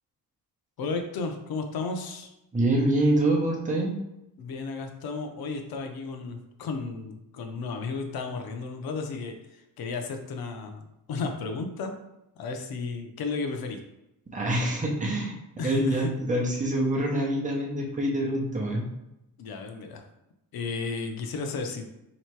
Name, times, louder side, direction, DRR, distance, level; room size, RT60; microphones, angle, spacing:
voice 1, 0.8-2.3 4.4-9.4 9.8-12.0 12.4-13.8 15.6-16.1 19.4-20.0 20.5-21.8, left 4 dB, 85° left, 5 dB, 0.7 m, -33 dB
voice 2, 2.5-4.0 14.3-15.3 15.6-18.9, right 1 dB, 20° right, -2 dB, 0.8 m, -25 dB
3.2 x 3.0 x 4.5 m, 0.90 s
wide cardioid pair, 145°, 36 cm